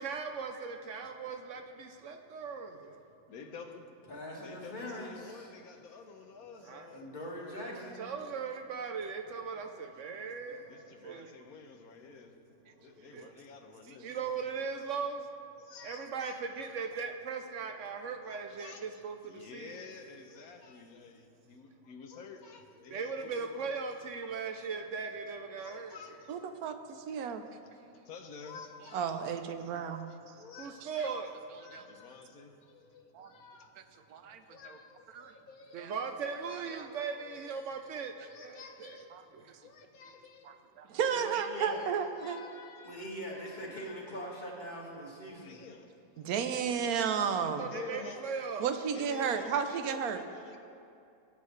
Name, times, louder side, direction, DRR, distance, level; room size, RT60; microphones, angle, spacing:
voice 1, 0.0-3.0 6.6-6.9 7.6-11.3 13.1-13.3 14.0-15.3 15.8-19.8 22.9-26.0 30.6-31.3 31.7-31.8 35.7-39.1 39.3-39.6 47.4-48.7, right 5 dB, 65° right, 5 dB, 0.9 m, -39 dB
voice 2, 3.3-3.9 4.4-7.1 10.7-12.4 12.8-14.1 15.6-16.4 18.2-23.7 24.2-24.7 25.6-26.4 28.0-29.2 30.4-31.1 31.5-33.7 34.5-36.1 36.6-37.5 38.2-39.1 39.6-40.5 41.3-44.0 45.4-47.0 47.5-48.3 48.6-50.6, left 5 dB, 80° left, 5 dB, 1.3 m, -50 dB
voice 3, 4.1-5.5 6.9-8.1 8.9-9.3 10.2-10.9 12.0-12.2 12.7-13.1 34.2-34.3 40.0-40.1 41.1-41.8 42.8-45.6, equal, 30° left, -4 dB, 1.9 m, -43 dB
voice 4, 26.3-27.4 28.9-30.1 31.7-31.8 33.1-33.3 34.1-34.8 35.1-35.3 35.8-35.9 36.7-36.9 39.1-39.2 40.5-42.4 46.2-47.6 48.6-50.2, right 7 dB, 85° right, 8 dB, 1.2 m, -33 dB
18.0 x 8.4 x 3.2 m, 2.5 s
omnidirectional pair, 1.5 m